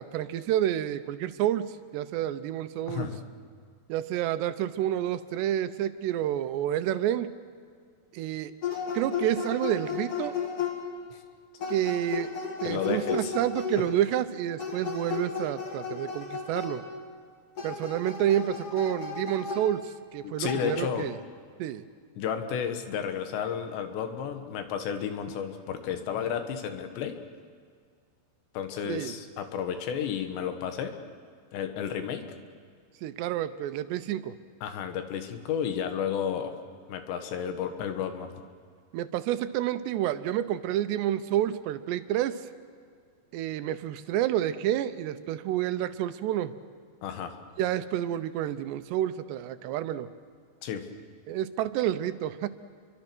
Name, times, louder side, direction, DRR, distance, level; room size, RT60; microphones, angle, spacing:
voice 1, 0.0-3.1 3.9-7.3 8.1-8.5 8.9-10.4 11.7-12.3 12.6-16.8 17.6-21.2 21.6-21.8 28.9-29.1 33.0-34.4 38.9-42.5 43.3-46.5 47.6-50.1 51.3-52.5, right 11 dB, 85° right, 11 dB, 3.0 m, -29 dB
voice 2, 2.9-3.2 11.1-11.2 12.6-13.3 13.8-13.9 20.2-21.1 22.2-27.2 28.6-31.0 31.5-32.3 34.6-36.6 36.9-38.3 47.0-47.3 50.6-50.9, left 8 dB, 90° left, 7 dB, 3.8 m, -32 dB
sound 1, 8.6-11.0 11.6-14.0 14.6-17.0 17.6-20.1 20.5-20.6, left 5 dB, 40° left, 2.6 m, -34 dB
28.5 x 24.0 x 6.2 m, 2.1 s
omnidirectional pair, 4.9 m